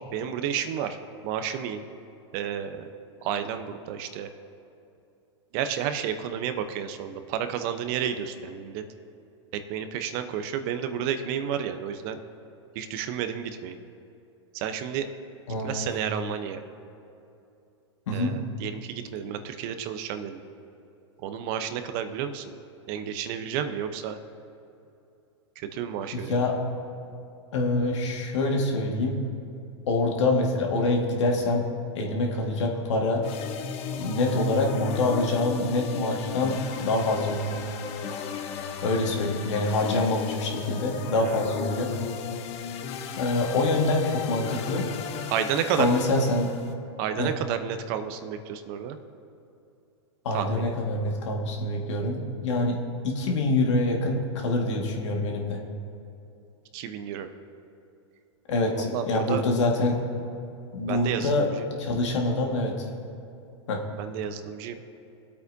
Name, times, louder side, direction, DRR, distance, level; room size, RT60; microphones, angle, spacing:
voice 1, 0.1-1.0 1.2-1.8 2.3-2.9 3.2-4.3 5.5-8.8 9.5-12.2 12.7-13.8 14.5-15.1 15.6-16.6 18.1-20.4 21.2-22.4 22.9-24.2 25.6-26.5 41.2-41.4 45.3-45.9 47.0-49.0 50.3-50.7 56.7-57.3 58.7-59.4 60.9-61.7 64.0-64.8, right 8 dB, 50° right, 9 dB, 0.8 m, -31 dB
voice 2, 15.5-15.9 18.1-18.3 26.1-26.6 27.5-29.2 29.9-31.6 32.0-33.3 34.0-37.6 38.8-41.9 43.2-44.9 45.8-46.5 47.2-47.3 50.2-52.8 53.0-55.6 58.5-60.0 60.7-61.5 61.8-62.9 63.7-63.8, left 2 dB, 75° left, 0 dB, 1.8 m, -25 dB
sound 1, 33.2-46.7, left 7 dB, 40° left, 0.9 m, -35 dB
21.5 x 8.4 x 2.7 m, 2.7 s
hypercardioid pair, 115°, 15 cm